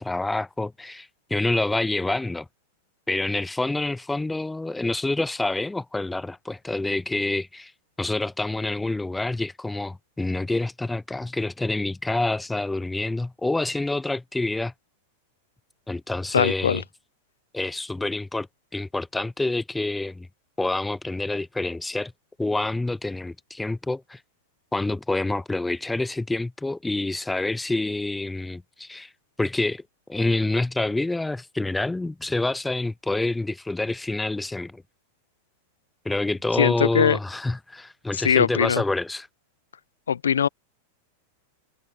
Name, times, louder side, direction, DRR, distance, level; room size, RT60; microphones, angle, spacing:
voice 1, 0.0-2.5 3.1-7.7 8.0-14.7 15.9-16.8 17.5-18.5 18.7-20.3 20.6-22.1 22.4-24.2 24.7-29.1 29.4-29.8 30.1-34.8 36.0-39.3, left 2 dB, 5° left, 0.6 m, -27 dB
voice 2, 16.3-16.8 36.6-37.2 38.1-38.8 40.1-40.5, left 7 dB, 90° left, 0.9 m, -21 dB
hypercardioid pair, 105°, 0 cm